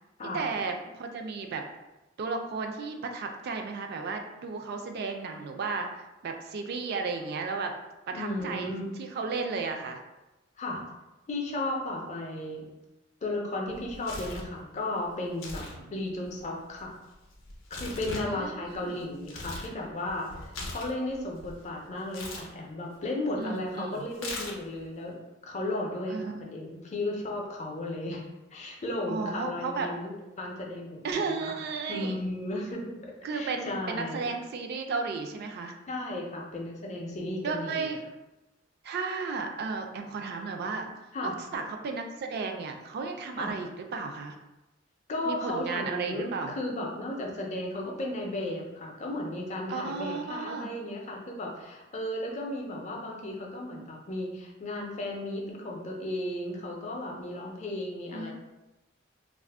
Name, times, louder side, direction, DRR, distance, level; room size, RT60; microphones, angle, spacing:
voice 1, 0.3-1.7 2.2-7.8 8.1-10.0 15.7-15.9 18.2-19.1 23.4-24.1 26.1-26.3 29.1-29.9 31.0-32.2 33.2-35.8 37.4-38.0 38.8-40.9 41.2-44.3 45.2-46.6 49.7-50.7 58.1-58.3, right 4 dB, 55° right, 4 dB, 0.3 m, -34 dB
voice 2, 8.1-8.9 10.6-10.8 11.3-12.7 13.2-15.6 15.9-16.9 17.7-28.3 28.5-30.1 30.4-31.4 31.9-34.3 35.9-37.9 41.1-41.3 43.3-43.5 45.1-58.3, left 1 dB, 35° left, 0 dB, 0.5 m, -34 dB
Tearing, 13.7-14.5 15.3-15.8 16.0-19.7 20.1-21.6 22.1-22.5 24.1-24.8, left 2 dB, 90° left, 0.5 m, -40 dB
2.4 x 2.0 x 3.4 m, 1.0 s
head